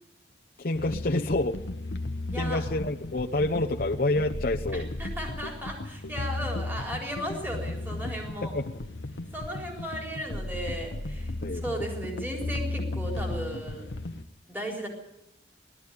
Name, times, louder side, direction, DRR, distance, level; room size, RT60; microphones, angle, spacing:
voice 1, 0.6-1.6 2.3-4.9 8.4-8.6 11.4-11.6, left 2 dB, 55° left, 1 dB, 0.9 m, -28 dB
sound 1, 0.7-14.2, left 2 dB, 75° left, 1.1 m, -35 dB
voice 2, 2.3-2.6 4.7-8.5 9.3-13.9 14.5-14.9, equal, 10° right, 0 dB, 4.1 m, -36 dB
21.0 x 13.5 x 9.6 m, 0.86 s
head